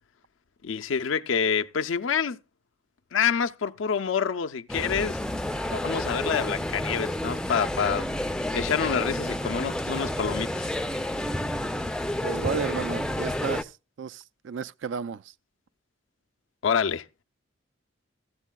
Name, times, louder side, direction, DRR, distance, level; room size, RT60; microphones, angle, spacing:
voice 1, 0.6-2.4 3.1-5.2 5.7-8.1 8.5-10.7 16.6-17.1, left 6 dB, 85° left, 0.5 m, -27 dB
sound 1, 4.7-13.6, left 1 dB, 5° left, 0.4 m, -30 dB
voice 2, 12.2-15.3, right 6 dB, 65° right, 0.4 m, -33 dB
14.5 x 8.1 x 2.2 m
head